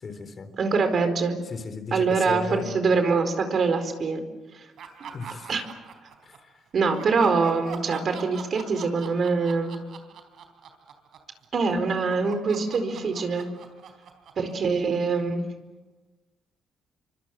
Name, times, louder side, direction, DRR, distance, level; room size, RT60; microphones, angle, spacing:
voice 1, 0.0-0.5 1.5-2.7 5.1-5.5 6.2-6.5, left 4 dB, 45° left, 9 dB, 3.9 m, -35 dB
voice 2, 0.6-1.4 1.9-4.2 4.5-4.6 5.0-5.1 5.5-5.6 6.7-9.7 11.5-13.5 14.4-15.4, right 4 dB, 50° right, 8 dB, 4.5 m, -24 dB
Laughter, 4.8-6.5 6.9-11.3 11.6-15.2, right 6 dB, 70° right, 3.8 m, -43 dB
26.5 x 24.5 x 7.7 m, 1.1 s
cardioid pair, 90°, 0 cm